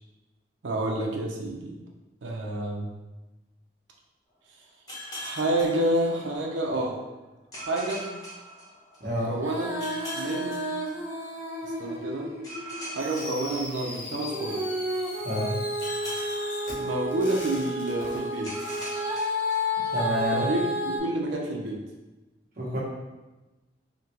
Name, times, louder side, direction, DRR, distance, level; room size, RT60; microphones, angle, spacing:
voice 1, 0.6-1.8 2.2-2.9 5.1-7.0 7.5-8.1 9.1-9.8 10.1-10.6 11.6-12.3 12.9-14.6 16.8-18.5 20.3-21.8, right 1 dB, 75° right, 0 dB, 0.5 m, -29 dB
sound 1, 4.9-6.6 7.5-9.3 9.8-11.5 12.4-14.4 15.8-17.6 18.4-20.2, equal, 20° left, 0.9 m, -41 dB
voice 2, 9.0-9.3 15.2-15.6 19.9-20.5 22.6-22.8, equal, 50° right, -6 dB, 1.0 m, -28 dB
Female singing, 9.3-13.1 14.3-21.0, left 1 dB, 15° right, 0.4 m, -31 dB
Fireworks, 13.0-19.0, left 1 dB, 45° left, 0.8 m, -40 dB
3.7 x 2.2 x 2.8 m, 1.1 s
head